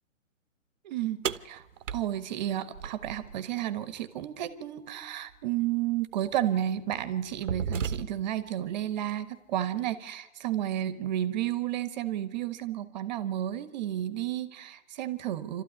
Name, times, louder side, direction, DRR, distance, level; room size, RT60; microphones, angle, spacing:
voice 1, 0.8-1.6 1.9-15.6, right 12 dB, 30° right, 14 dB, 1.3 m, -32 dB
sound 1, 1.2-3.4 5.3-5.4 6.2-6.4 6.9-8.4, right 7 dB, 60° right, 1.0 m, -34 dB
27.0 x 13.5 x 9.8 m, 1.0 s
hypercardioid pair, 145°, 41 cm